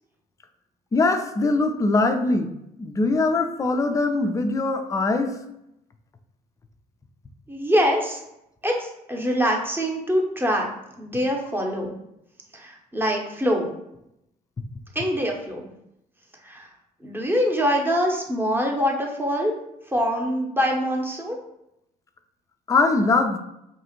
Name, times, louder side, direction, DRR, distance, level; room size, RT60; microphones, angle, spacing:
voice 1, 0.9-2.5 2.8-5.4 22.7-23.4, left 3 dB, 15° left, 7 dB, 0.3 m, -22 dB
voice 2, 7.5-8.2 8.6-10.7 11.0-11.9 12.5-13.7 14.9-15.7 16.4-16.7 17.0-19.5 19.9-21.4, equal, 10° right, 0 dB, 0.7 m, -24 dB
2.8 x 2.4 x 2.8 m, 0.82 s
hypercardioid pair, 55°, 21 cm